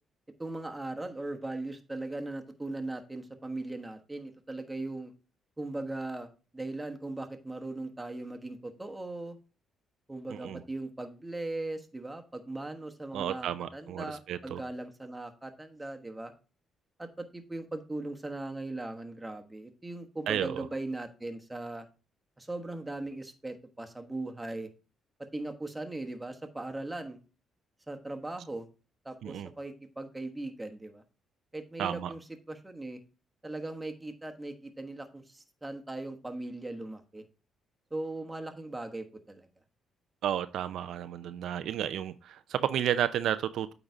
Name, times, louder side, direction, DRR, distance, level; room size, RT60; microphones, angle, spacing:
voice 1, 0.4-5.1 5.6-9.4 10.1-16.3 17.0-21.9 22.4-24.7 25.3-27.2 27.9-28.7 29.0-31.0 31.5-33.0 33.4-37.2 37.9-39.5, right 2 dB, 15° right, 1.3 m, -39 dB
voice 2, 10.3-10.6 13.1-14.6 20.3-20.7 29.2-29.5 31.8-32.1 40.2-43.7, right 10 dB, 75° right, 0.4 m, -32 dB
8.8 x 4.0 x 4.8 m
cardioid pair, 90°, 0 cm